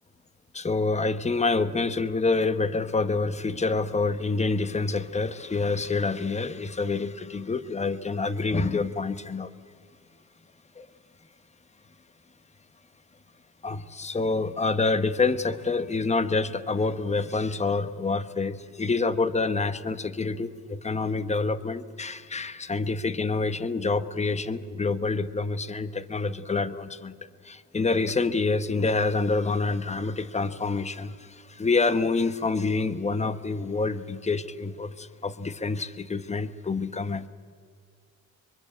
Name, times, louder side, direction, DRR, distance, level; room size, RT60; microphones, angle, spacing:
voice 1, 0.5-9.5 10.8-10.9 13.6-27.2 27.4-37.3, left 3 dB, 20° left, 13 dB, 1.2 m, -27 dB
24.0 x 23.0 x 8.1 m, 2.1 s
cardioid pair, 90°, 30 cm